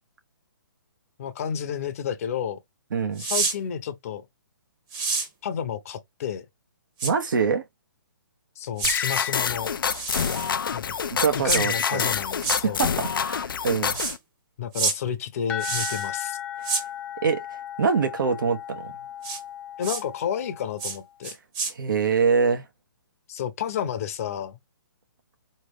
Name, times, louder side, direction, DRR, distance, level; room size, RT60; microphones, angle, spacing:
voice 1, 1.2-2.6 3.2-4.2 5.4-6.5 8.6-9.7 10.7-11.0 11.3-12.8 14.6-16.4 19.8-21.4 23.3-24.6, left 8 dB, 45° left, 0.8 m, -31 dB
voice 2, 2.9-3.2 7.0-7.6 11.1-12.1 12.6-14.0 17.2-17.4 17.8-18.9 21.7-22.6, right 5 dB, 65° right, 1.2 m, -24 dB
sound 1, 3.2-3.6 4.9-5.3 7.0-7.1 8.8-9.0 9.9-10.5 11.5-11.6 12.4-12.6 13.9-14.2 14.7-15.0 15.6-16.1 16.6-16.8 19.2-19.4 19.8-20.0 20.8-21.0 21.2-21.7, right 4 dB, 20° right, 1.1 m, -27 dB
sound 2, 8.8-14.2, left 7 dB, 80° left, 0.4 m, -27 dB
sound 3, 15.5-21.1, left 11 dB, 10° left, 0.5 m, -36 dB
3.8 x 3.2 x 3.4 m
hypercardioid pair, 150°, 11 cm